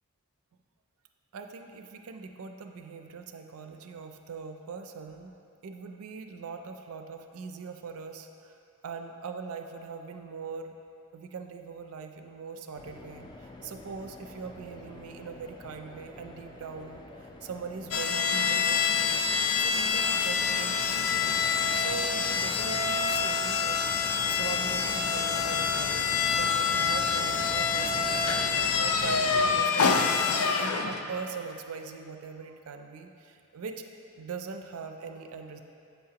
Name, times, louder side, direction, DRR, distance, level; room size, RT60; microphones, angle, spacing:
voice 1, 1.3-5.3 5.6-8.6 8.8-10.8 11.1-19.3 19.6-21.4 21.7-23.8 24.3-33.8 34.2-35.6, right 5 dB, 75° right, 5 dB, 0.4 m, -41 dB
sound 1, 12.8-29.6, left 2 dB, 20° left, 0.3 m, -45 dB
sound 2, 17.9-31.1, left 5 dB, 85° left, 0.4 m, -26 dB
7.9 x 5.6 x 2.8 m, 2.5 s
head